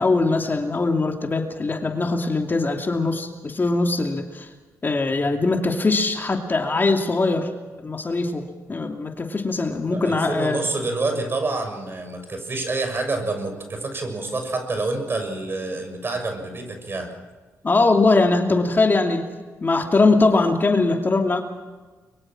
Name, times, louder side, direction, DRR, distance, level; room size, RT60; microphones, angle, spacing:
voice 1, 0.0-4.5 4.8-7.5 7.8-10.6 17.6-19.3 19.6-21.4, left 3 dB, 35° left, 4 dB, 2.7 m, -21 dB
voice 2, 9.9-17.1, right 3 dB, 40° right, 5 dB, 6.6 m, -27 dB
23.5 x 23.0 x 6.2 m, 1.3 s
cardioid pair, 65°, 6 cm